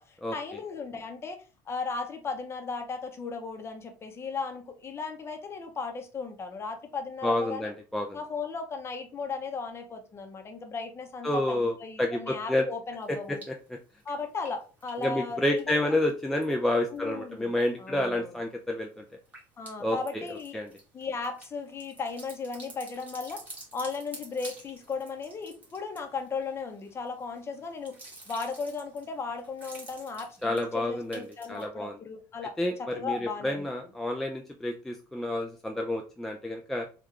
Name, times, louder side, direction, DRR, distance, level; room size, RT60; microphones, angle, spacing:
voice 1, 0.0-7.7 8.1-13.4 14.0-15.8 16.9-18.4 19.6-20.6 20.9-23.4 23.7-28.0 28.3-33.7, left 4 dB, 25° left, 5 dB, 0.7 m, -36 dB
voice 2, 7.2-8.2 11.2-12.6 13.3-13.8 15.0-19.0 19.8-20.2 20.5-20.7 30.4-32.0 32.6-36.9, left 1 dB, 5° left, 2 dB, 0.3 m, -29 dB
sound 1, 13.0-13.7 14.0-17.0 17.3-17.9 18.3-31.6, right 2 dB, 15° right, 1.2 m, -50 dB
3.6 x 2.3 x 3.1 m, 0.35 s
cardioid pair, 125°, 10 cm